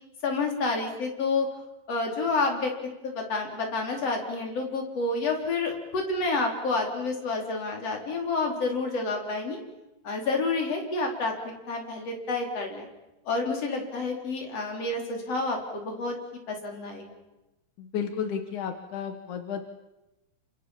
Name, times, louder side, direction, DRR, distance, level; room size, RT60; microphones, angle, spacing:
voice 1, 0.2-1.5 1.9-2.7 3.0-9.6 10.0-12.9 13.3-16.1 16.5-17.2, left 3 dB, 30° left, 1 dB, 4.8 m, -29 dB
voice 2, 17.8-19.6, left 7 dB, 65° left, 7 dB, 2.0 m, -32 dB
28.5 x 26.5 x 7.3 m, 0.99 s
omnidirectional pair, 5.7 m